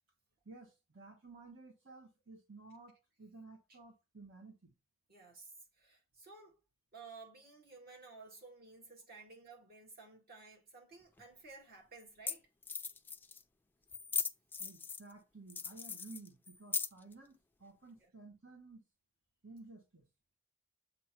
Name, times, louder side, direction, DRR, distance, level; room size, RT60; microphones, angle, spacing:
voice 1, 0.4-4.7 8.0-8.2 14.6-18.8 19.4-20.1, right 3 dB, 65° right, 1.4 m, -54 dB
voice 2, 5.1-6.6 6.9-12.5 18.0-18.1, right 4 dB, 45° right, 2.0 m, -55 dB
sound 1, 11.2-11.3 12.0-12.1 12.3-12.4 12.6-13.4 13.9-15.1 15.5-17.1, left 5 dB, 10° left, 0.4 m, -39 dB
7.3 x 2.9 x 5.9 m
head